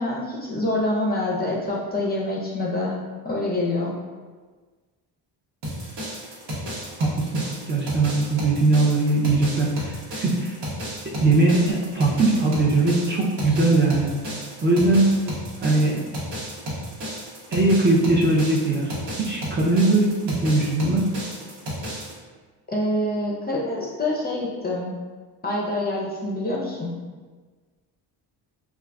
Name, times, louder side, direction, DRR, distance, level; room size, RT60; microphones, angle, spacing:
voice 1, 0.0-3.0 3.2-3.9 22.7-24.9 25.4-26.9, left 1 dB, 20° left, -3 dB, 0.6 m, -26 dB
sound 1, 5.6-22.1, equal, 75° right, 1.1 m, -33 dB
voice 2, 7.0-10.6 11.2-14.1 14.6-15.2 15.6-16.0 17.5-21.1, right 2 dB, 25° right, -4 dB, 0.5 m, -20 dB
2.4 x 2.3 x 3.3 m, 1.4 s
cardioid pair, 75°, 44 cm